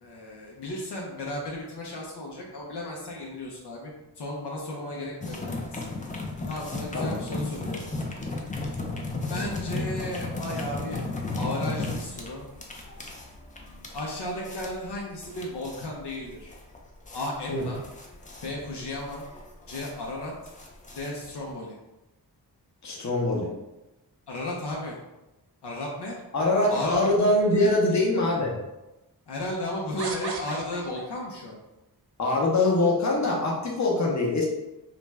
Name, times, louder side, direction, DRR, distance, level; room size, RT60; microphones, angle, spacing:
voice 1, 0.0-5.8 6.5-7.8 9.3-11.0 11.4-12.4 13.9-16.5 17.1-17.8 18.4-19.2 19.7-20.3 20.9-21.8 24.3-25.0 25.6-26.2 26.7-27.0 27.5-27.6 29.3-31.6, left 1 dB, 75° left, -2 dB, 0.6 m, -34 dB
sound 1, 5.2-21.5, left 2 dB, 20° left, 0.4 m, -35 dB
voice 2, 22.8-23.5 26.3-28.5 32.2-34.4, left 2 dB, 40° left, -2 dB, 0.8 m, -23 dB
sound 2, 26.7-27.6 28.4-28.5 30.0-31.3, right 4 dB, 70° right, 0.5 m, -37 dB
2.5 x 2.2 x 3.1 m, 0.97 s
wide cardioid pair, 80°, 41 cm